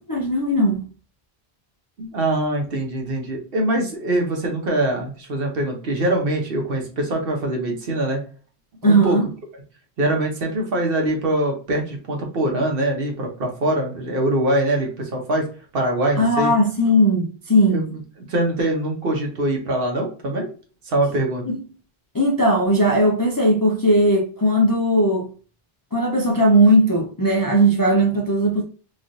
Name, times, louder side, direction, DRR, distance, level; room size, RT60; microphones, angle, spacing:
voice 1, 0.1-0.8 8.8-9.3 16.2-17.9 21.5-21.6 22.1-25.3 25.9-28.6, right 1 dB, 35° left, 0.4 m, -18 dB
voice 2, 2.0-8.2 8.8-9.2 10.0-15.4 15.7-16.5 17.7-18.0 18.3-20.5 20.8-21.4, right 1 dB, 65° right, 1.1 m, -23 dB
3.1 x 2.4 x 2.6 m
omnidirectional pair, 1.0 m